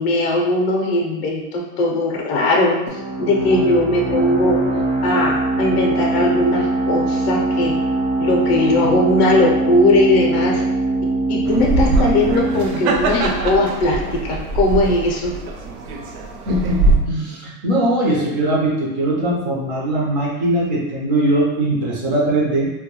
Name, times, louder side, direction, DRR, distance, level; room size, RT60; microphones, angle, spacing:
voice 1, 0.0-2.8 3.2-4.6 5.0-7.7 8.2-10.6 11.3-15.3, left 2 dB, 50° left, -1 dB, 0.5 m, -19 dB
sound 1, 2.9-14.2, right 2 dB, 60° right, 0.8 m, -22 dB
sound 2, 11.5-17.0, right 3 dB, 85° right, 0.5 m, -22 dB
voice 2, 16.5-22.7, right 1 dB, 35° right, -4 dB, 0.5 m, -20 dB
2.2 x 2.2 x 2.8 m, 0.99 s
supercardioid pair, 175°, 41 cm